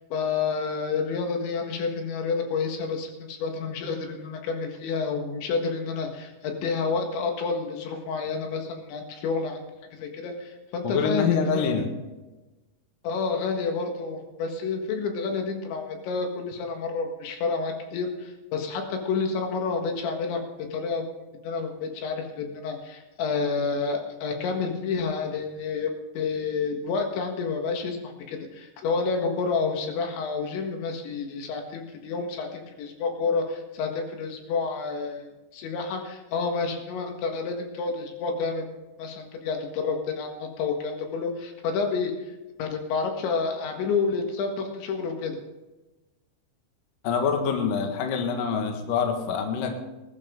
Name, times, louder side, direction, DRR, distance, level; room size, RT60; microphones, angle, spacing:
voice 1, 0.1-9.6 9.9-11.7 13.0-20.4 20.7-21.0 21.4-35.3 35.5-38.7 39.0-42.1 42.6-45.4, left 4 dB, 75° left, 3 dB, 3.9 m, -29 dB
voice 2, 10.8-11.9 47.0-49.8, left 6 dB, 60° left, 3 dB, 2.7 m, -25 dB
20.5 x 12.0 x 3.7 m, 1.1 s
omnidirectional pair, 5.4 m